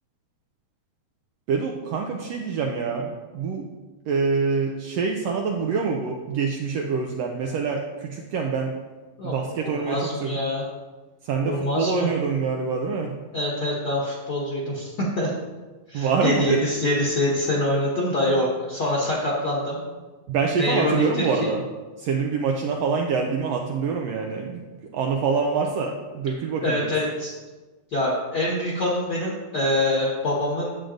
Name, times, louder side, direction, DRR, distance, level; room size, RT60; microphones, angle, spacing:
voice 1, 1.5-3.6 4.1-8.7 9.2-10.4 11.2-13.1 15.9-16.6 20.3-21.6 22.0-24.6 24.9-26.8, right 5 dB, 85° right, 1 dB, 1.5 m, -25 dB
voice 2, 9.2-10.6 11.4-12.1 13.3-15.3 15.9-19.8 20.6-21.5 26.6-27.3 27.9-30.7, left 1 dB, 45° left, -4 dB, 1.5 m, -25 dB
10.5 x 7.7 x 2.5 m, 1.3 s
omnidirectional pair, 3.5 m